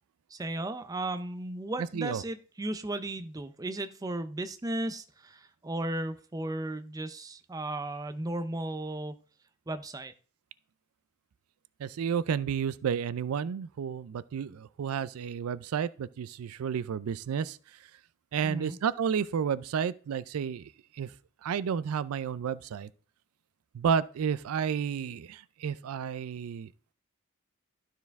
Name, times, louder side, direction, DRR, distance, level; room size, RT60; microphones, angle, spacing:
voice 1, 0.3-9.2 9.7-10.1 18.4-18.8, right 1 dB, 15° right, 0.4 m, -35 dB
voice 2, 11.8-17.6 18.3-20.7 21.0-21.1 21.4-22.9 23.7-26.7, right 7 dB, 90° right, 0.4 m, -31 dB
12.0 x 4.6 x 3.5 m
head